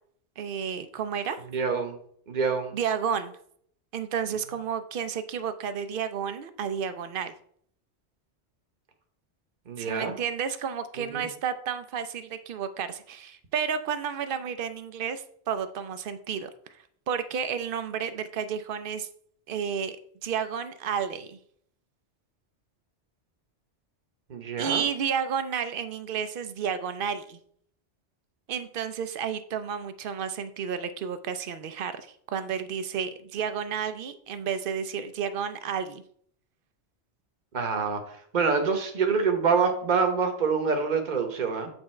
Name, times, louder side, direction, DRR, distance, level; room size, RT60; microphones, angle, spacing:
voice 1, 0.4-1.4 2.7-3.4 3.9-7.3 9.8-16.5 17.1-19.1 19.5-20.0 20.2-21.4 24.6-27.4 28.5-36.0, right 7 dB, 60° right, 11 dB, 0.7 m, -31 dB
voice 2, 1.5-2.0 2.3-2.8 9.7-10.1 11.0-11.2 24.3-24.8 37.5-38.0 38.3-41.7, right 5 dB, 45° right, 5 dB, 1.0 m, -26 dB
8.0 x 3.5 x 4.3 m, 0.64 s
omnidirectional pair, 1.2 m